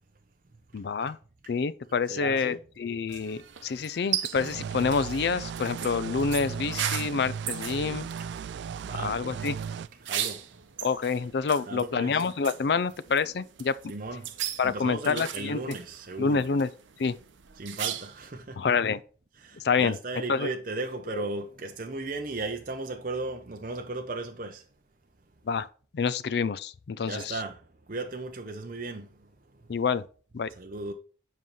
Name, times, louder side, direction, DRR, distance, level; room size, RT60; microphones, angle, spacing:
voice 1, 0.7-1.2 1.5-8.1 9.0-9.6 10.8-13.9 14.6-15.8 16.2-16.7 17.0-17.2 18.6-19.0 19.5-20.5 21.1-21.2 25.4-25.7 25.9-27.4 29.7-30.1 30.3-30.5, left 5 dB, 60° left, 0.4 m, -28 dB
voice 2, 2.1-2.6 8.8-9.2 10.0-10.5 11.7-12.2 13.9-14.3 14.6-16.4 17.6-18.6 19.4-24.6 27.0-27.6 27.9-29.7 30.6-30.9, right 3 dB, 45° right, 0.7 m, -36 dB
sound 1, 3.1-18.3, right 10 dB, 90° right, 0.7 m, -38 dB
sound 2, 4.4-9.9, right 7 dB, 70° right, 0.3 m, -36 dB
7.6 x 5.3 x 3.1 m
head